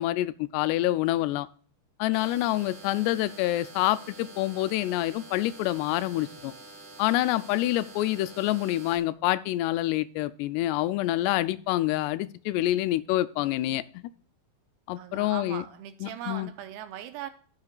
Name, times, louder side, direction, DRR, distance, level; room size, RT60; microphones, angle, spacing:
voice 1, 0.0-1.5 2.0-6.5 7.0-14.1 14.9-15.6 16.0-16.5, left 15 dB, 90° left, 15 dB, 2.7 m, -27 dB
sound 1, 2.1-9.0, right 3 dB, 45° right, 2.4 m, -47 dB
voice 2, 15.0-17.3, right 11 dB, 80° right, 9 dB, 2.5 m, -39 dB
15.5 x 6.6 x 2.3 m, 0.44 s
omnidirectional pair, 4.7 m